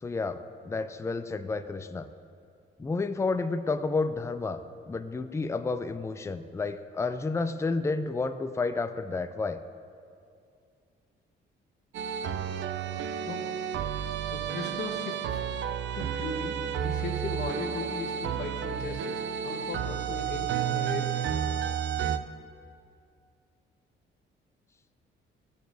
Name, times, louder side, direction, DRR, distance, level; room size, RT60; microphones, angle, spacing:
voice 1, 0.0-2.1 2.8-4.6 4.9-9.6, left 3 dB, 15° left, 10 dB, 0.4 m, -31 dB
sound 1, 11.9-22.2, right 8 dB, 65° right, 0.5 m, -31 dB
voice 2, 14.3-15.4 15.9-16.5 16.8-21.3, left 3 dB, 60° left, 0 dB, 1.2 m, -37 dB
15.0 x 6.7 x 2.7 m, 2.3 s
cardioid pair, 90°, 20 cm